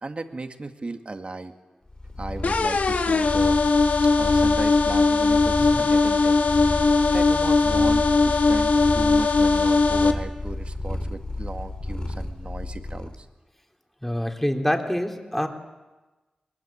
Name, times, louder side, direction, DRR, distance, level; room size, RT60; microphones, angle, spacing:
voice 1, 0.0-1.5 2.2-3.6 4.1-6.4 7.1-13.3, right 3 dB, 45° right, 6 dB, 2.1 m, -36 dB
Purr, 1.9-13.2, left 2 dB, 35° left, 2.7 m, -32 dB
sound 1, 2.4-10.1, left 3 dB, 70° left, 2.0 m, -20 dB
voice 2, 14.0-15.5, equal, 10° left, 3 dB, 3.5 m, -26 dB
21.5 x 21.5 x 8.8 m, 1.2 s
cardioid pair, 50°, 3 cm